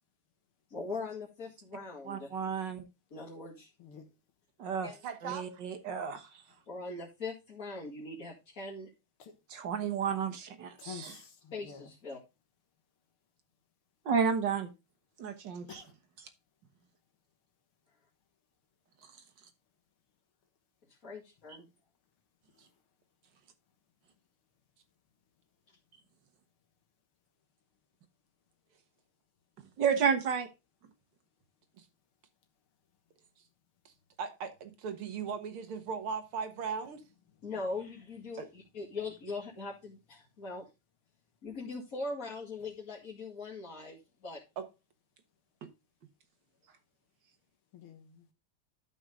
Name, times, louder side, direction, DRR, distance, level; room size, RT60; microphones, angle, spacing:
voice 1, 0.7-2.5 3.1-3.7 4.8-5.0 6.7-8.9 11.5-12.2 20.9-21.7 37.4-40.7 41.4-44.4, left 3 dB, 40° left, 2.4 m, -41 dB
voice 2, 2.1-2.8 4.6-4.9 5.2-6.2 9.5-11.1 14.1-14.7 15.2-15.8 29.8-30.5, right 6 dB, 60° right, 1.9 m, -31 dB
voice 3, 5.0-5.6 31.8-31.9 34.2-37.0 38.4-38.5, right 6 dB, 80° right, 2.3 m, -38 dB
voice 4, 10.8-11.9 15.7-15.9 22.6-22.7 47.7-48.3, left 7 dB, 80° left, 2.3 m, -49 dB
12.5 x 5.5 x 3.7 m
omnidirectional pair, 2.3 m